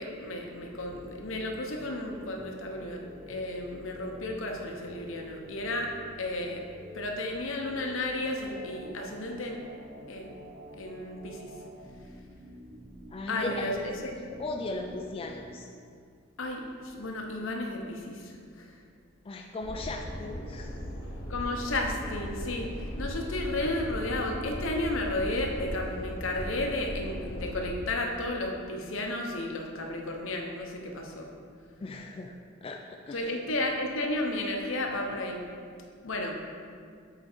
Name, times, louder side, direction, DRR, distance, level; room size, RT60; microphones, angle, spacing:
voice 1, 0.0-5.9 6.2-6.6 6.9-9.6 10.1-10.4 10.7-11.5 13.3-13.9 16.4-18.8 21.3-22.7 23.0-31.3 33.1-35.4 36.0-36.4, left 2 dB, 70° left, 2 dB, 0.8 m, -33 dB
sound 1, 0.7-15.5, equal, 30° right, 0.7 m, -48 dB
voice 2, 13.1-13.7 14.1-15.7 19.2-20.7 31.8-32.3 32.6-33.4, left 2 dB, 30° left, 2 dB, 0.3 m, -37 dB
sound 2, 19.6-27.7, equal, 90° left, 1.3 m, -38 dB
7.8 x 3.8 x 4.5 m, 2.2 s
head